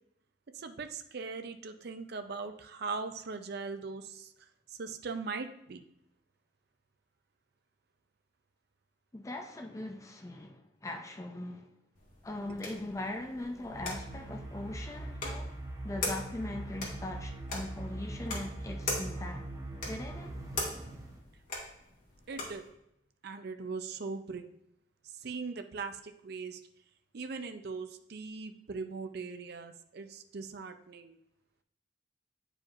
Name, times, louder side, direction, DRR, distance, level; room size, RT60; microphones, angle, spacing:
voice 1, 0.5-4.3 4.8-5.8 22.3-22.6 23.2-24.5 25.2-26.6 27.1-31.2, right 4 dB, 60° right, 0.5 m, -40 dB
voice 2, 9.1-11.7 12.2-15.6 15.8-19.5 19.8-20.3, left 1 dB, 15° left, 0.5 m, -40 dB
sound 1, 11.9-22.7, left 2 dB, 50° left, 1.8 m, -42 dB
sound 2, 13.7-21.2, right 1 dB, 20° right, 0.7 m, -41 dB
8.8 x 4.9 x 2.5 m
head